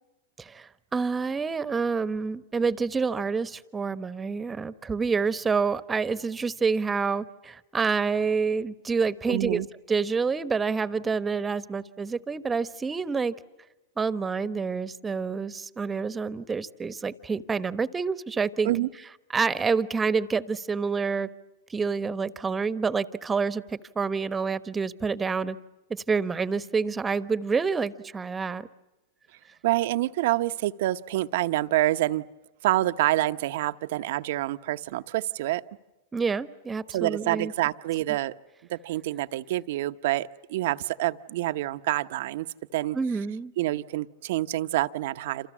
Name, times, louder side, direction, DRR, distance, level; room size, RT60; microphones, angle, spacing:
voice 1, 0.4-9.6 9.9-13.3 14.0-18.7 19.3-21.3 21.7-25.6 25.9-28.7 36.1-37.5 42.9-43.5, right 5 dB, 15° right, 14 dB, 1.2 m, -28 dB
voice 2, 9.3-9.7 18.6-18.9 29.6-32.3 32.6-35.6 36.9-38.3 38.7-42.5 42.7-43.0 43.6-45.5, right 16 dB, 65° right, 12 dB, 0.9 m, -27 dB
28.0 x 28.0 x 7.4 m, 1.0 s
hypercardioid pair, 105°, 0 cm